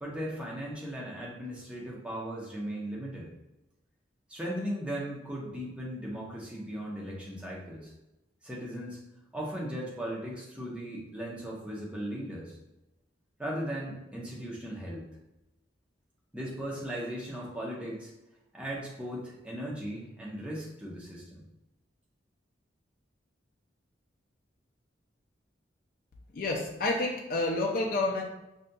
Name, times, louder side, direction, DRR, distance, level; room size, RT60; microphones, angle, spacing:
voice 1, 0.0-3.3 4.3-7.9 8.4-9.0 9.3-12.6 13.4-15.0 16.3-18.1 18.5-21.4, equal, 5° right, -4 dB, 0.7 m, -37 dB
voice 2, 26.3-28.2, left 2 dB, 50° left, 0 dB, 0.4 m, -29 dB
5.0 x 2.7 x 2.2 m, 0.94 s
head